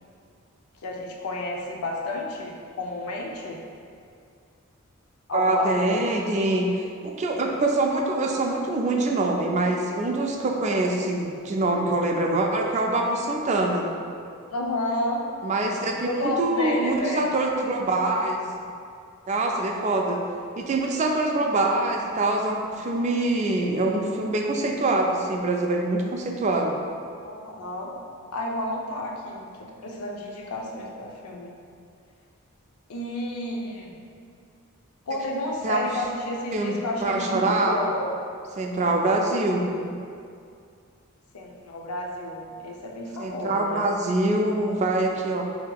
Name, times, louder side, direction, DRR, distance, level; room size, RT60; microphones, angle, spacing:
voice 1, 0.8-3.6 5.3-6.0 14.5-15.3 16.0-17.3 27.2-27.9 28.3-29.5 29.8-31.5 32.9-34.0 35.1-38.2 41.3-43.9, left 1 dB, 90° left, -1 dB, 0.6 m, -31 dB
voice 2, 5.3-13.9 15.4-18.4 19.3-20.2 20.6-26.8 35.6-35.9 36.5-36.8 37.0-37.8 38.6-39.9 43.2-45.4, right 2 dB, 35° right, 1 dB, 0.3 m, -24 dB
5.5 x 2.7 x 2.3 m, 2.3 s
head